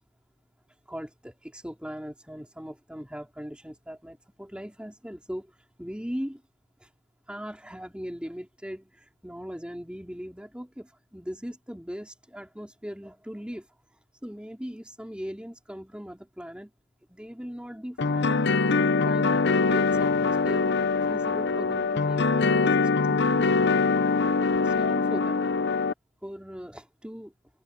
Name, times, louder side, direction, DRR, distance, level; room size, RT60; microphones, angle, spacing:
voice 1, 0.9-5.5 5.8-6.4 6.8-6.9 7.3-13.7 14.2-16.7 17.1-18.5 19.0-20.7 21.0-23.5 24.6-25.4 26.2-27.3, equal, 5° right, 3.5 m, -39 dB
sound 1, 18.0-25.9, left 4 dB, 55° left, 0.7 m, -23 dB
head